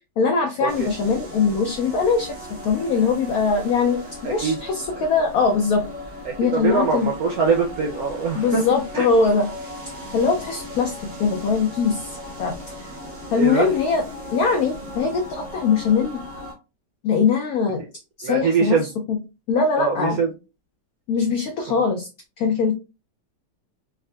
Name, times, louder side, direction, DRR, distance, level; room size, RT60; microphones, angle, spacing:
voice 1, 0.2-5.8 6.4-7.1 8.3-9.5 10.1-12.9 13.3-14.0 14.3-16.2 17.0-17.8 18.2-18.8 19.1-19.2 19.5-20.2 21.1-22.1 22.4-22.7, left 5 dB, 80° left, 3 dB, 0.8 m, -21 dB
sound 1, 0.7-16.5, left 1 dB, 40° right, 0.6 m, -37 dB
voice 2, 4.2-4.6 6.2-8.6 8.9-9.1 13.4-13.7 18.2-18.9 19.8-20.3, right 5 dB, 75° right, 1 dB, 0.8 m, -22 dB
3.5 x 2.4 x 2.2 m, 0.29 s
omnidirectional pair, 2.1 m